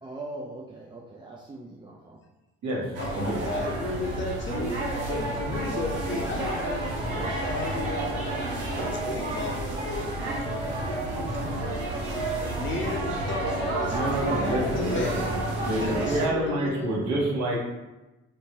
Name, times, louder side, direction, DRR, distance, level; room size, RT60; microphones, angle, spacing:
voice 1, 0.0-2.2, right 2 dB, 15° right, -3 dB, 0.5 m, -41 dB
sound 1, 2.9-16.3, right 1 dB, 80° right, 0.8 m, -30 dB
voice 2, 3.0-4.7 5.0-6.8 7.3-8.4 9.1-10.2 11.9-12.0 12.5-15.4 15.8-17.0, left 3 dB, 35° left, 0 dB, 0.8 m, -34 dB
voice 3, 13.9-15.2 15.6-17.6, right 1 dB, 55° right, -3 dB, 1.2 m, -27 dB
3.4 x 2.8 x 2.8 m, 1.1 s
figure-of-eight pair, 45°, 34 cm